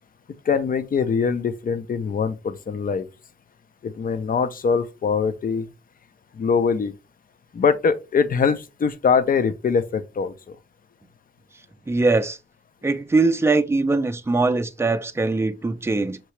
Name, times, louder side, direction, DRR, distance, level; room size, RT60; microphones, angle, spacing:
voice 1, 0.4-3.1 3.8-5.7 6.3-6.9 7.5-10.6, left 5 dB, 50° left, 0.6 m, -23 dB
voice 2, 11.9-12.4 12.8-16.2, right 3 dB, 15° right, 0.5 m, -21 dB
5.9 x 2.8 x 3.2 m
wide cardioid pair, 105°, 19 cm